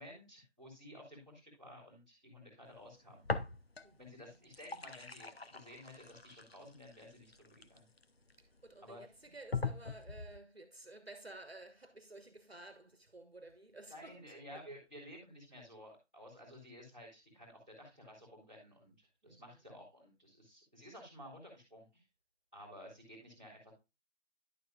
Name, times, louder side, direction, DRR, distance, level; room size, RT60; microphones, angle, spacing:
voice 1, 0.0-3.3 4.0-7.9 8.8-9.0 13.9-22.0 22.5-23.7, equal, 5° left, 2.1 m, -54 dB
sound 1, 3.2-4.0 4.3-8.3 8.9-9.0 9.5-10.4, left 4 dB, 55° left, 0.7 m, -41 dB
voice 2, 3.8-4.7 8.4-14.6 15.5-15.7 19.3-19.6, right 2 dB, 55° right, 1.3 m, -54 dB
11.0 x 6.7 x 2.4 m
figure-of-eight pair, 175°, 36 cm